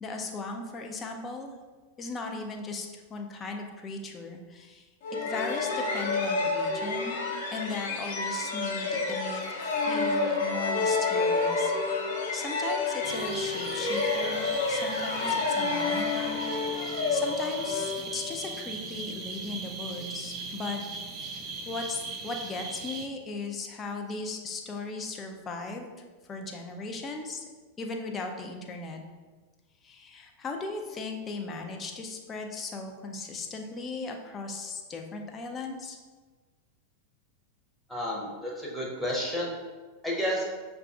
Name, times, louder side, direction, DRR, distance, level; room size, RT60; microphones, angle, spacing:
voice 1, 0.0-1.5 2.0-4.9 5.2-7.2 7.5-11.7 12.3-16.5 16.7-20.8 21.2-27.4 27.8-29.0 29.8-36.0, left 3 dB, 20° left, 3 dB, 0.5 m, -37 dB
sound 1, 5.0-18.5, left 3 dB, 55° left, 0.8 m, -29 dB
sound 2, 13.0-23.1, right 4 dB, 30° right, 0.4 m, -38 dB
voice 2, 37.9-39.6 40.0-40.4, equal, 5° left, -3 dB, 0.9 m, -31 dB
6.4 x 2.3 x 2.4 m, 1.4 s
figure-of-eight pair, 90°, 0 cm